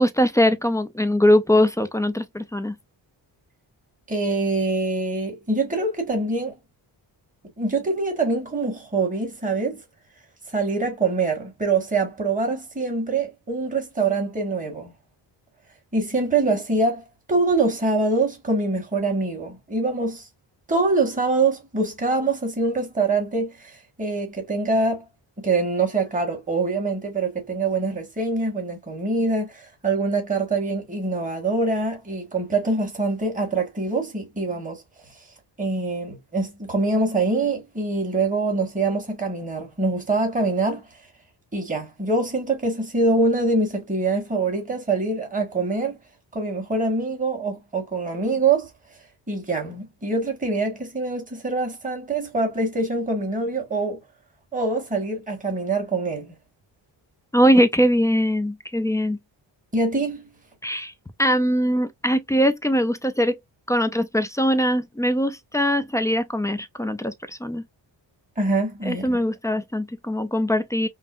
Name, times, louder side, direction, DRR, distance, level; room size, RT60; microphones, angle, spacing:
voice 1, 0.0-2.8 57.3-59.2 60.6-60.9 61.2-63.4 63.7-67.6 68.8-70.9, equal, 10° left, 0.3 m, -21 dB
voice 2, 4.1-6.6 7.6-9.8 10.5-14.9 15.9-20.2 20.7-25.0 25.4-34.8 35.6-40.9 41.5-46.0 46.3-48.7 49.3-54.0 54.5-56.3 59.7-60.3 68.4-69.2, right 3 dB, 20° right, 1.6 m, -24 dB
5.4 x 2.0 x 2.4 m
wide cardioid pair, 155°, 44 cm